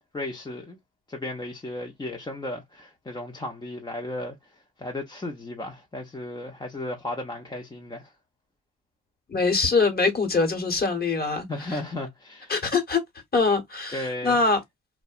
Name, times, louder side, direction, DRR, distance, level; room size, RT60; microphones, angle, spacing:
voice 1, 0.1-0.8 1.1-8.1 11.5-12.5 13.9-14.4, left 1 dB, 15° left, 0.5 m, -35 dB
voice 2, 9.3-11.8 12.5-13.0 13.3-14.6, left 4 dB, 30° left, 1.1 m, -23 dB
2.7 x 2.1 x 2.3 m
cardioid pair, 90°, 30 cm